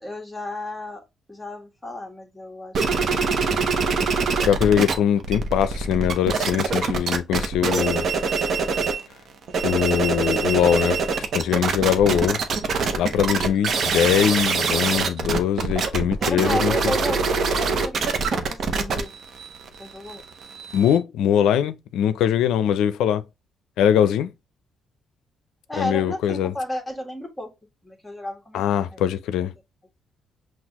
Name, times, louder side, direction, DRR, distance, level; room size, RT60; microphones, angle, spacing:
voice 1, 0.0-3.8 16.2-19.1 19.8-20.2 25.7-27.5 27.8-29.0, left 1 dB, 5° left, 1.4 m, -33 dB
sound 1, 2.7-4.9 5.2-9.0 9.4-21.0, right 4 dB, 60° right, 0.8 m, -24 dB
voice 2, 4.5-8.1 9.6-11.0 11.3-12.4 12.9-16.7 20.7-23.2 23.8-24.3 25.8-26.5 28.5-29.5, left 9 dB, 85° left, 0.4 m, -21 dB
5.9 x 2.4 x 2.9 m
cardioid pair, 90°, 0 cm